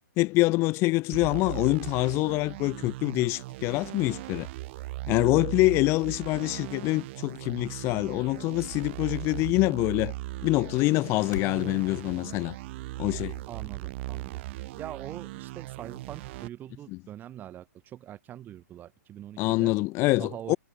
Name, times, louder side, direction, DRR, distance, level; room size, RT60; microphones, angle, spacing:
voice 1, 0.2-4.5 5.1-10.1 10.4-12.6 13.0-13.4 19.4-20.6, left 22 dB, 30° left, 0.8 m, -25 dB
sound 1, 1.1-16.5, right 19 dB, 40° right, 0.8 m, -38 dB
sound 2, 5.4-11.7, left 7 dB, 80° left, 4.2 m, -50 dB
voice 2, 13.5-14.4 14.8-19.8 20.2-20.6, right 11 dB, 20° right, 1.4 m, -43 dB
hypercardioid pair, 140°, 9 cm